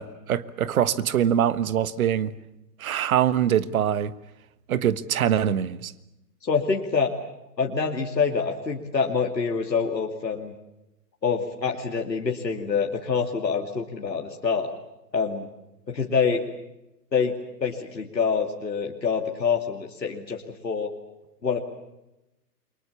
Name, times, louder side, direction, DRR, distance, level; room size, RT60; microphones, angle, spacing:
voice 1, 0.0-2.3 2.8-4.1 4.7-5.9, right 10 dB, 55° right, 15 dB, 1.6 m, -23 dB
voice 2, 6.4-7.1 7.6-10.5 11.2-14.7 15.1-15.5 15.9-16.4 17.1-17.3 17.6-20.9 21.4-21.6, left 5 dB, 90° left, 1 dB, 2.7 m, -26 dB
29.0 x 24.0 x 7.1 m, 0.93 s
hypercardioid pair, 125°, 49 cm